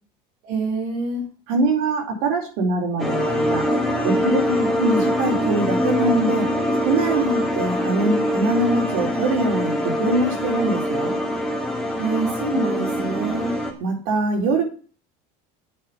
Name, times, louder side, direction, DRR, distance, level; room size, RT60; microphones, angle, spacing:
voice 1, 0.4-1.2 4.4-4.7 7.2-7.5 12.0-13.5, right 2 dB, 70° right, 0 dB, 3.1 m, -25 dB
voice 2, 1.5-3.7 4.0-4.4 4.8-6.5 6.8-7.2 7.6-11.2 13.8-14.6, right 2 dB, 85° right, 1 dB, 4.0 m, -23 dB
sound 1, 3.0-13.7, equal, ahead, 1.9 m, -23 dB
8.6 x 5.9 x 7.4 m, 0.38 s
cardioid pair, 170°, 18 cm